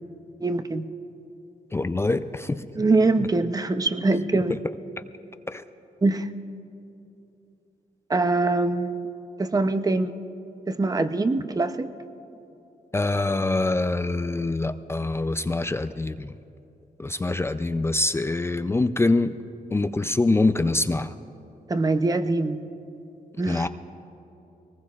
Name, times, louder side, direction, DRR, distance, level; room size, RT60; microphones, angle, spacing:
voice 1, 0.4-0.9 2.7-4.5 6.0-6.3 8.1-9.1 9.4-10.1 10.7-11.9 21.7-22.6 23.4-23.7, right 3 dB, 25° right, 10 dB, 0.7 m, -23 dB
voice 2, 1.7-2.7 4.3-4.4 5.5-5.6 12.9-16.3 17.0-19.3 19.7-21.1 23.5-23.7, left 2 dB, 15° left, 10 dB, 0.4 m, -24 dB
23.5 x 19.5 x 2.4 m, 2.8 s
cardioid pair, 90°, 15 cm